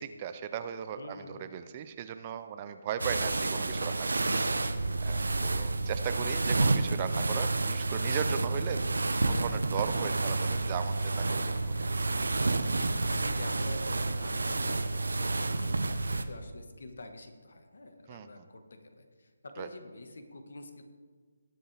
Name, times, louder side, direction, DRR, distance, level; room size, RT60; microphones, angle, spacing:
voice 1, 0.0-4.1 5.0-8.8 9.2-11.7 18.1-18.5 19.6-19.7, right 8 dB, 25° right, 10 dB, 0.5 m, -37 dB
voice 2, 1.0-1.5 5.2-5.5 5.8-6.7 8.0-8.3 13.0-15.8 16.1-20.8, left 2 dB, 65° left, 6 dB, 1.4 m, -47 dB
sound 1, 3.0-16.2, right 2 dB, 80° right, 0.8 m, -29 dB
19.0 x 7.6 x 3.4 m, 1.5 s
figure-of-eight pair, 160°, 0 cm